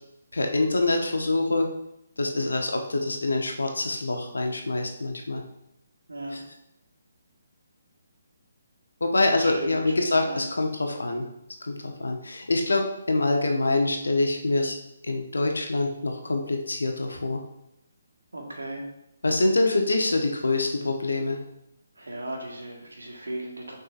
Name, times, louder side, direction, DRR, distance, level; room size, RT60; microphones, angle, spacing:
voice 1, 0.3-1.7 2.2-5.4 6.3-6.4 9.0-11.3 11.6-14.7 15.0-17.4 19.2-21.4, left 2 dB, 80° left, 3 dB, 1.2 m, -25 dB
voice 2, 6.1-6.4 9.3-9.9 10.2-10.4 18.3-18.9 22.0-23.8, right 1 dB, 85° right, 1 dB, 1.6 m, -36 dB
6.9 x 5.3 x 2.6 m, 0.81 s
figure-of-eight pair, 145°, 0 cm